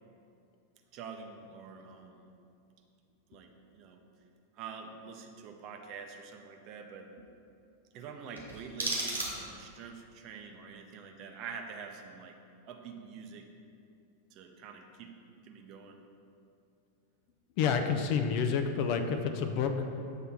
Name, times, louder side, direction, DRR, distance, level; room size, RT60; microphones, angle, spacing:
voice 1, 0.9-2.3 3.3-4.0 4.6-7.1 7.9-12.4 12.7-13.5 14.3-15.1 15.4-16.0, right 5 dB, 40° right, 4 dB, 0.6 m, -46 dB
sound 1, 8.4-9.8, right 2 dB, 80° right, 1.5 m, -35 dB
voice 2, 17.6-19.7, left 6 dB, 45° left, 6 dB, 0.5 m, -29 dB
7.8 x 3.3 x 5.7 m, 2.5 s
figure-of-eight pair, 90°, 0 cm